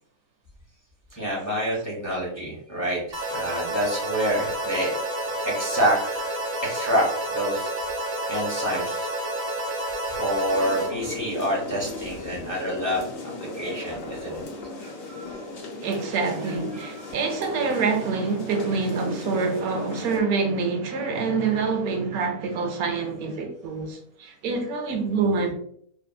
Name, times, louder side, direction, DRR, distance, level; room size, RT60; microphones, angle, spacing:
voice 1, 1.2-5.0 5.4-7.7 8.3-9.1 10.1-13.1 13.4-14.4 14.8-15.5 16.4-17.2, equal, 15° left, 0.8 m, -28 dB
sound 1, 3.1-10.9, right 1 dB, 45° right, 1.2 m, -29 dB
sound 2, 10.5-20.2, left 3 dB, 70° left, 1.0 m, -37 dB
voice 2, 15.8-25.5, right 4 dB, 85° right, 1.1 m, -26 dB
2.6 x 2.5 x 2.2 m
omnidirectional pair, 1.5 m